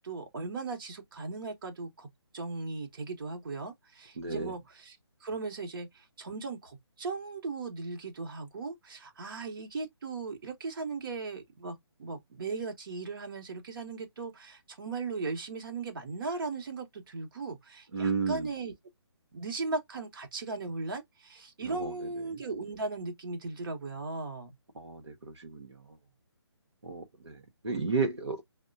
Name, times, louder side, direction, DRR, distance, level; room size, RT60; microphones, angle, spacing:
voice 1, 0.0-2.1 2.3-5.0 5.2-18.7 19.3-24.5 27.7-27.9, right 3 dB, 50° right, 1.1 m, -37 dB
voice 2, 4.2-4.5 17.9-18.5 21.6-22.4 24.7-25.8 26.8-28.4, right 4 dB, 75° right, 1.0 m, -33 dB
5.2 x 2.2 x 2.5 m
figure-of-eight pair, 145°, 15 cm